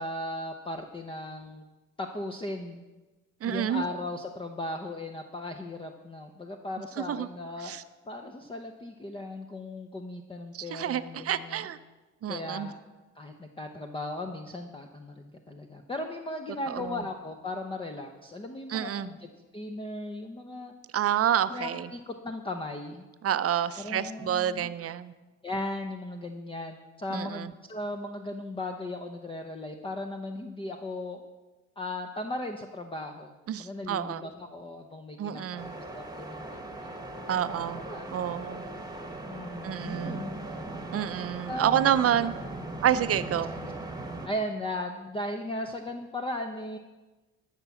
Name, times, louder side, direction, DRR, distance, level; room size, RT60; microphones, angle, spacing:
voice 1, 0.0-1.6 2.0-2.8 3.4-7.8 8.0-11.7 12.3-12.8 13.1-20.7 21.5-23.0 23.8-24.7 25.4-31.2 31.8-37.0 37.9-38.1 39.3-40.4 41.5-41.9 43.6-43.7 44.2-46.8, left 1 dB, 15° left, 4 dB, 0.8 m, -37 dB
voice 2, 3.4-3.8 7.1-7.3 7.6-7.8 10.5-11.8 12.2-12.7 16.7-17.0 18.7-19.1 20.9-21.9 23.2-25.1 27.1-27.5 33.5-34.2 35.2-35.7 37.3-37.8 38.1-38.6 39.6-40.2 40.9-42.3 42.8-43.5, right 10 dB, 50° right, 13 dB, 0.6 m, -28 dB
sound 1, 35.6-44.3, right 1 dB, 15° right, 1.3 m, -39 dB
13.0 x 6.0 x 7.0 m, 1.2 s
cardioid pair, 90°, 30 cm